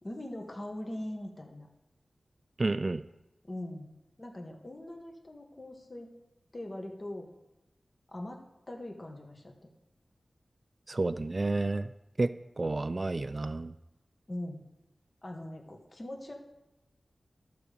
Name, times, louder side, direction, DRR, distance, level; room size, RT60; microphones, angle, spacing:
voice 1, 0.0-1.7 3.4-3.9 4.2-6.1 6.5-7.3 8.1-9.7 14.3-14.6 15.2-16.3, left 1 dB, 35° left, 1 dB, 1.4 m, -41 dB
voice 2, 2.6-3.0 10.9-11.9 12.2-13.7, right 2 dB, 45° right, 11 dB, 0.3 m, -30 dB
12.5 x 5.0 x 6.7 m, 0.97 s
wide cardioid pair, 65°, 0 cm